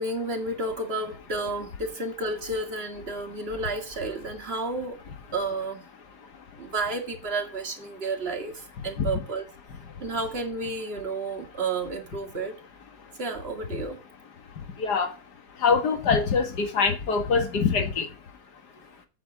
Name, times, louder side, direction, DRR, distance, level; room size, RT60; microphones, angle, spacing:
voice 1, 0.0-5.0 5.3-5.8 6.6-9.4 10.0-12.6 13.2-14.0, right 2 dB, 40° right, 2.1 m, -31 dB
voice 2, 6.1-6.6 9.0-9.2 9.8-10.0 13.0-13.1 13.7-13.8 14.5-18.6, left 5 dB, 85° left, 2.2 m, -26 dB
8.6 x 5.4 x 7.1 m
omnidirectional pair, 1.7 m